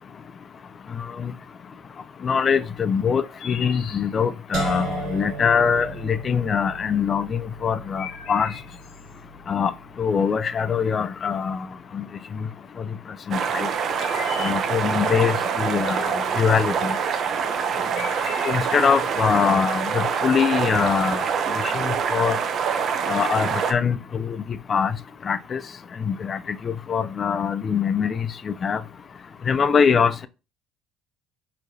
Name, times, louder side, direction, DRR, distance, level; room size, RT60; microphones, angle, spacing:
voice 1, 1.0-1.3 2.2-8.5 9.5-9.7 10.0-11.7 11.9-12.1 12.3-12.5 13.3-13.7 14.4-17.0 18.4-21.2 21.6-22.4 23.1-24.9 25.2-25.6 26.0-28.8 29.5-30.3, left 6 dB, 35° left, 0.3 m, -23 dB
sound 1, 2.7-21.1, left 6 dB, 70° left, 0.8 m, -42 dB
sound 2, 4.5-10.5, right 4 dB, 70° right, 1.3 m, -36 dB
sound 3, 13.3-23.7, right 6 dB, 45° right, 0.6 m, -25 dB
4.5 x 3.1 x 2.7 m
cardioid pair, 120°, 0 cm